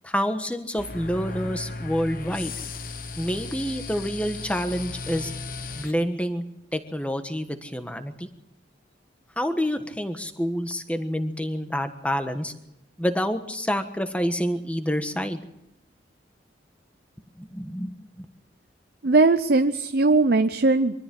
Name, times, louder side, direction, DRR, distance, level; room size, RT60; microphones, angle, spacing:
voice 1, 0.0-2.5 3.2-5.3 5.7-6.4 6.7-8.3 9.4-12.5 13.0-15.4 17.4-17.9, equal, 5° left, 8 dB, 1.3 m, -28 dB
sound 1, 0.8-5.9, left 3 dB, 50° left, 1.2 m, -36 dB
voice 2, 19.0-21.0, right 3 dB, 55° right, 9 dB, 0.7 m, -19 dB
24.0 x 14.0 x 7.7 m, 0.86 s
head